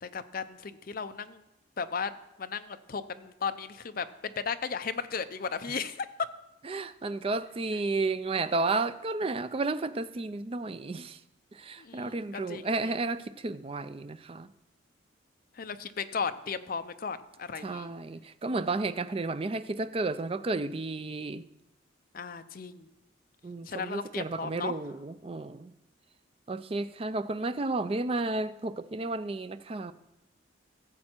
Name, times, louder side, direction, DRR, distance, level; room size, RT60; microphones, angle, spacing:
voice 1, 0.0-1.4 1.8-2.1 2.4-6.1 11.8-13.0 15.6-17.9 22.1-22.9 23.7-24.7, left 5 dB, 45° left, 0.5 m, -35 dB
voice 2, 6.7-11.2 11.5-14.5 17.6-21.4 23.4-25.7 26.5-29.9, right 3 dB, 30° right, 0.4 m, -32 dB
15.0 x 7.6 x 4.4 m
head